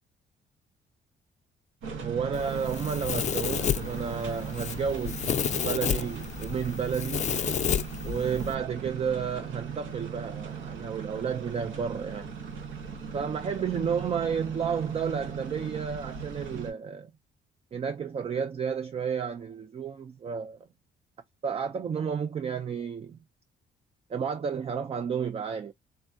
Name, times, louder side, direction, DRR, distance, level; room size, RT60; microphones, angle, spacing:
sound 1, 1.8-16.7, right 6 dB, 80° right, 0.9 m, -38 dB
voice 1, 2.0-7.3 8.0-12.4 13.1-17.1 17.7-20.7 21.4-23.2 24.1-25.7, right 6 dB, 30° right, 0.4 m, -32 dB
Domestic sounds home sounds, 2.3-8.5, left 8 dB, 35° left, 0.4 m, -31 dB
3.5 x 2.1 x 2.6 m
cardioid pair, 90°, 20 cm